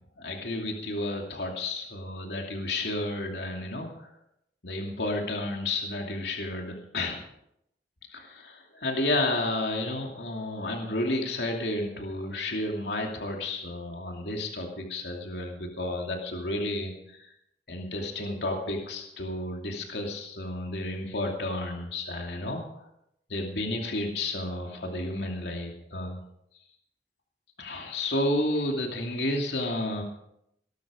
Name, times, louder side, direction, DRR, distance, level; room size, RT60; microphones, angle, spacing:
voice 1, 0.2-4.1 4.6-7.2 8.1-17.3 17.7-22.6 23.3-26.2 27.6-30.0, left 1 dB, 75° left, 1 dB, 2.6 m, -31 dB
19.0 x 12.0 x 5.1 m, 0.77 s
head